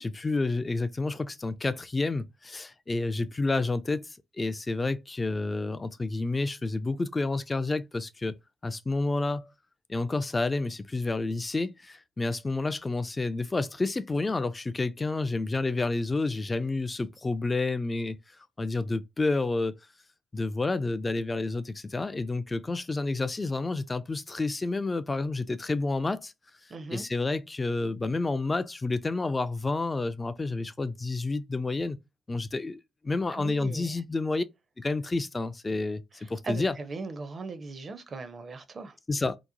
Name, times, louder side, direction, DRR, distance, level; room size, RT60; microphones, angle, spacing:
voice 1, 0.0-8.4 8.6-9.5 9.9-18.2 18.6-19.7 20.3-26.3 26.9-32.0 32.3-34.4 34.8-36.0 36.3-36.7 39.1-39.4, left 3 dB, 25° left, 0.3 m, -29 dB
voice 2, 26.7-27.0 33.3-34.0 36.2-39.0, right 3 dB, 40° right, 0.5 m, -39 dB
2.8 x 2.1 x 2.5 m
figure-of-eight pair, 45°, 0 cm